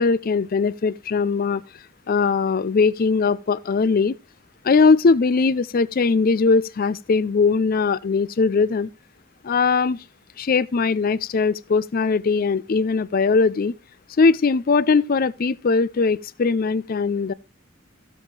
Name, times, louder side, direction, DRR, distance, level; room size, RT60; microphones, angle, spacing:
voice 1, 0.0-1.6 2.1-4.1 4.6-8.9 9.4-10.0 10.4-13.7 14.2-17.3, left 4 dB, 45° left, 0.4 m, -20 dB
14.5 x 7.6 x 3.2 m
head